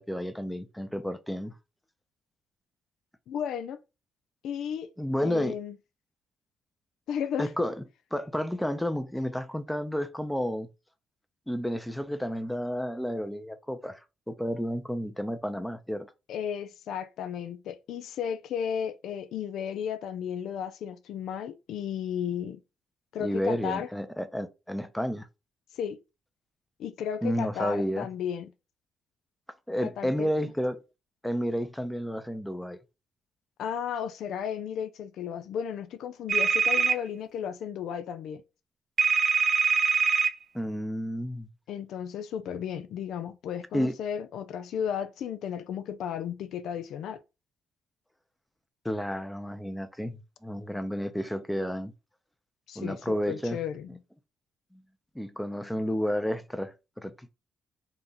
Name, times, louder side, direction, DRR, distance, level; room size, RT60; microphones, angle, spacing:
voice 1, 0.0-1.6 5.0-5.5 7.4-7.8 8.1-10.7 11.5-14.0 14.3-16.1 23.2-25.3 27.2-28.1 29.7-30.8 31.2-32.8 40.5-41.5 43.7-43.9 48.8-51.9 52.8-53.6 54.7-54.8 55.1-57.3, equal, 5° left, 0.7 m, -31 dB
voice 2, 3.3-3.8 4.4-4.9 5.2-5.8 7.1-7.5 16.3-22.6 23.1-23.9 25.8-26.0 26.8-28.5 29.8-30.3 33.6-38.4 41.7-47.2 52.7-53.0 53.3-54.0, left 8 dB, 80° left, 0.5 m, -34 dB
sound 1, 36.3-37.0 39.0-40.3, right 5 dB, 55° right, 0.6 m, -23 dB
3.9 x 2.9 x 3.9 m
cardioid pair, 90°, 0 cm